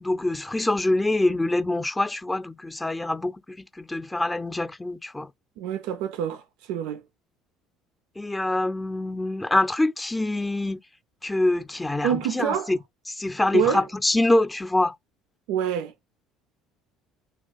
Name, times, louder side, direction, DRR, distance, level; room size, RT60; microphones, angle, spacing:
voice 1, 0.0-5.3 8.2-10.8 11.2-12.8 13.1-14.9, left 2 dB, 15° left, 0.5 m, -25 dB
voice 2, 5.6-7.0 12.0-12.7 13.5-13.8 15.5-15.9, right 9 dB, 75° right, 0.3 m, -27 dB
2.4 x 2.3 x 4.0 m
hypercardioid pair, 65°, 0 cm